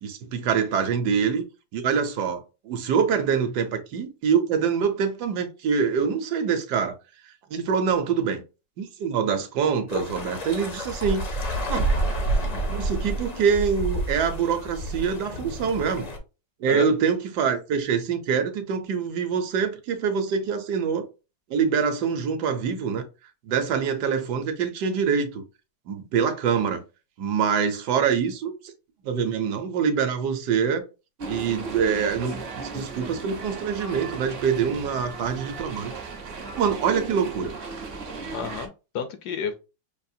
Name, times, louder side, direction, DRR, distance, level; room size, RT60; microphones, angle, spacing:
voice 1, 0.0-1.4 1.7-7.0 7.3-8.4 8.8-11.3 11.7-11.9 12.5-16.1 16.6-21.1 21.5-23.1 23.5-25.4 25.9-26.8 27.2-28.7 29.0-30.8 31.3-35.9 36.6-37.5, right 6 dB, 70° right, 1.2 m, -25 dB
sound 1, 9.9-16.2, right 1 dB, 50° left, 0.4 m, -29 dB
sound 2, 31.2-38.7, right 4 dB, 50° right, 0.7 m, -36 dB
voice 2, 38.3-39.6, left 6 dB, 70° left, 1.0 m, -31 dB
5.2 x 2.4 x 2.6 m
omnidirectional pair, 1.9 m